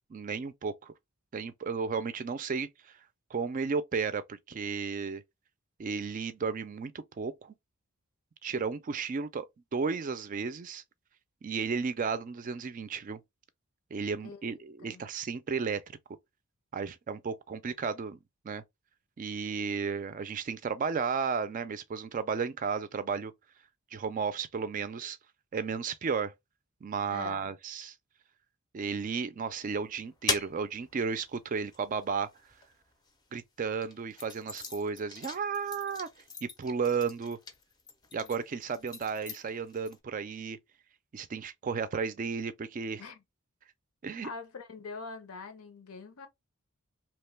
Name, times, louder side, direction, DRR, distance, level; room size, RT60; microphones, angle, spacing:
voice 1, 0.1-0.9 1.3-3.0 3.3-5.2 5.8-7.5 8.4-9.5 9.7-10.8 11.4-13.2 13.9-15.8 16.7-18.2 18.4-18.6 19.2-23.3 23.9-25.2 25.5-26.3 26.8-27.9 28.7-32.3 33.3-36.1 36.4-37.4 38.1-40.6 41.1-43.0 44.0-44.3, right 5 dB, 35° right, 0.3 m, -33 dB
voice 2, 27.1-27.5 43.0-43.2 44.2-46.3, left 4 dB, 85° left, 0.8 m, -44 dB
sound 1, 29.5-33.1 33.7-40.0, left 4 dB, 20° left, 0.5 m, -41 dB
2.9 x 2.1 x 3.2 m
head